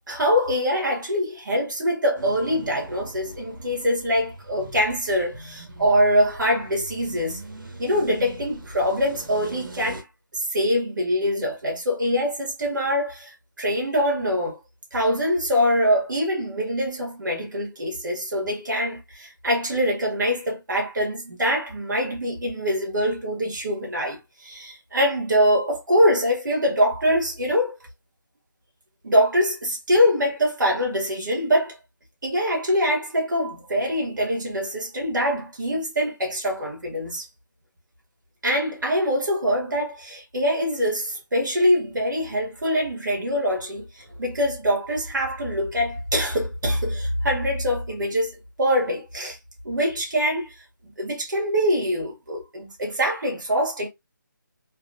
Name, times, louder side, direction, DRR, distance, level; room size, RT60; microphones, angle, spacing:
voice 1, 0.1-7.4 7.8-10.1 10.3-14.6 14.9-27.8 29.0-31.8 32.2-37.3 38.4-49.4 49.6-50.6 51.0-53.9, equal, 70° right, 2.0 m, -24 dB
sound 1, 2.2-10.0, right 2 dB, 85° right, 1.5 m, -41 dB
3.5 x 3.1 x 2.5 m
hypercardioid pair, 170°, 11 cm